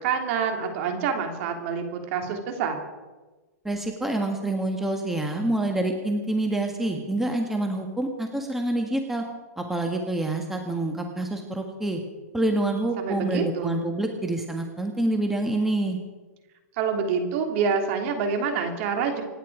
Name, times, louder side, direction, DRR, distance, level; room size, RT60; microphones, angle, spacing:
voice 1, 0.0-2.7 13.0-13.8 16.8-19.2, right 6 dB, 50° right, 4 dB, 3.2 m, -27 dB
voice 2, 3.6-9.2 9.6-12.0 12.3-16.0, right 1 dB, 5° right, 3 dB, 1.5 m, -27 dB
26.5 x 10.0 x 4.9 m, 1.2 s
hypercardioid pair, 140°, 9 cm